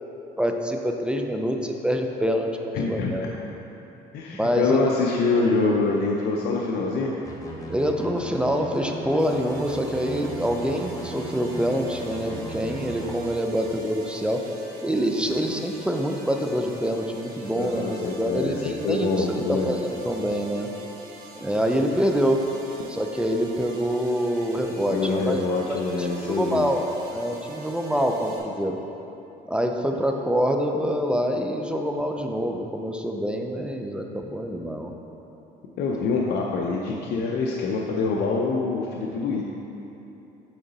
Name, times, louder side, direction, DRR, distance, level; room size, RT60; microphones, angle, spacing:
voice 1, 0.4-3.3 4.4-4.9 7.7-14.4 14.8-20.7 21.4-22.4 22.9-25.4 25.7-26.8 27.1-28.8 29.5-34.9, equal, 5° right, 3 dB, 0.4 m, -26 dB
voice 2, 2.7-3.3 4.1-7.1 17.5-19.7 24.9-26.7 35.8-39.4, left 3 dB, 75° left, -2 dB, 0.6 m, -25 dB
sound 1, 7.2-13.2, right 1 dB, 20° left, 1.0 m, -38 dB
sound 2, 9.2-28.4, right 2 dB, 60° right, 1.1 m, -44 dB
8.9 x 3.9 x 4.0 m, 3.0 s
cardioid pair, 110°, 17 cm